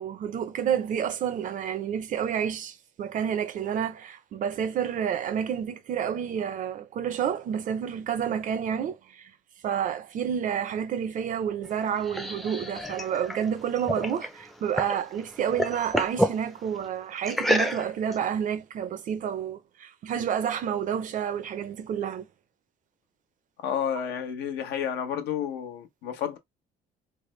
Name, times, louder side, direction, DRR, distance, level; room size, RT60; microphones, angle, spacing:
voice 1, 0.0-9.3 9.6-22.3, right 8 dB, 50° right, 0.6 m, -29 dB
sound 1, 11.6-15.0 15.3-16.4 17.3-18.1, equal, ahead, 0.5 m, -29 dB
voice 2, 23.6-26.4, left 8 dB, 80° left, 1.0 m, -31 dB
3.3 x 2.1 x 3.1 m
cardioid pair, 110°, 17 cm